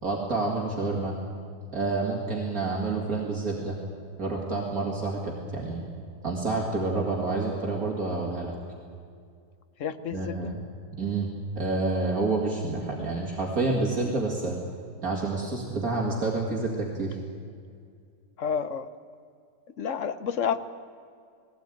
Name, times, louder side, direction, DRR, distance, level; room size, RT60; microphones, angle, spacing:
voice 1, 0.0-1.1 1.7-3.8 4.2-5.8 6.2-8.5 10.1-10.6 11.0-11.3 11.6-14.6 15.0-17.2, right 3 dB, 60° right, -1 dB, 2.7 m, -28 dB
voice 2, 9.8-10.5 18.4-18.9 19.8-20.6, left 7 dB, 55° left, 12 dB, 1.1 m, -29 dB
20.5 x 17.0 x 9.2 m, 2.3 s
omnidirectional pair, 1.8 m